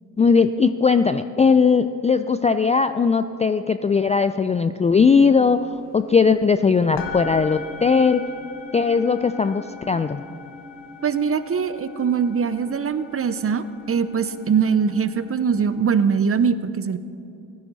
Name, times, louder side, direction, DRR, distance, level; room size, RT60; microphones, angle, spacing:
voice 1, 0.2-8.3 8.7-10.2, left 5 dB, 15° left, 11 dB, 0.3 m, -19 dB
sound 1, 5.1-5.2 5.5-6.6 6.9-15.8, left 4 dB, 70° left, 1.8 m, -39 dB
voice 2, 11.0-17.0, right 6 dB, 30° right, 13 dB, 0.8 m, -22 dB
16.0 x 14.0 x 4.1 m, 2.8 s
hypercardioid pair, 50°, 45 cm